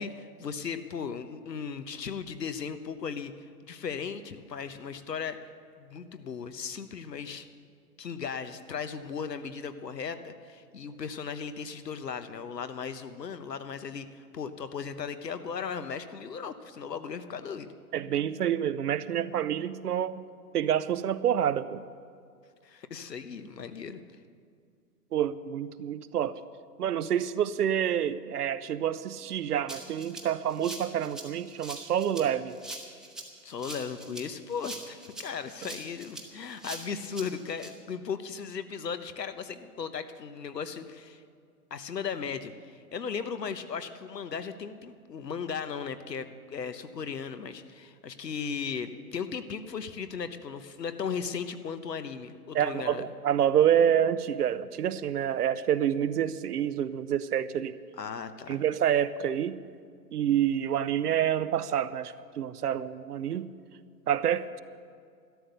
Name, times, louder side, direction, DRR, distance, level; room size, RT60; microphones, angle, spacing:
voice 1, 0.0-3.3 3.6-5.4 5.8-7.5 8.0-17.7 22.6-24.0 33.4-41.2 41.7-53.1 58.0-58.6, left 6 dB, 85° left, 10 dB, 1.1 m, -37 dB
voice 2, 17.9-20.2 20.5-21.8 25.1-26.3 26.8-32.6 35.6-35.7 52.5-57.8 58.5-59.6 60.1-63.5 64.1-64.6, right 9 dB, 70° right, 14 dB, 0.8 m, -27 dB
Rattle (instrument), 29.7-37.7, right 2 dB, ahead, 1.0 m, -43 dB
12.5 x 12.0 x 6.7 m, 2.2 s
hypercardioid pair, 125°, 48 cm